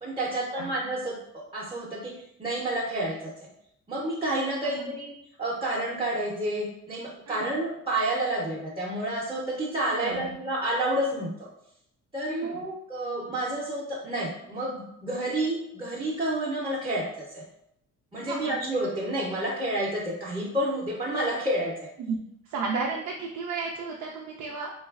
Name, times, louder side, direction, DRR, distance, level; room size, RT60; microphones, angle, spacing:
voice 1, 0.0-3.3 3.9-11.3 12.1-17.4 18.1-21.7, right 1 dB, 20° right, -6 dB, 0.6 m, -30 dB
voice 2, 4.6-4.9 7.3-7.4 10.0-10.4 12.3-12.5 18.3-18.6 22.1-22.2 22.5-24.7, right 4 dB, 85° right, -1 dB, 0.5 m, -33 dB
3.1 x 2.3 x 2.3 m, 0.78 s
cardioid pair, 90°, 30 cm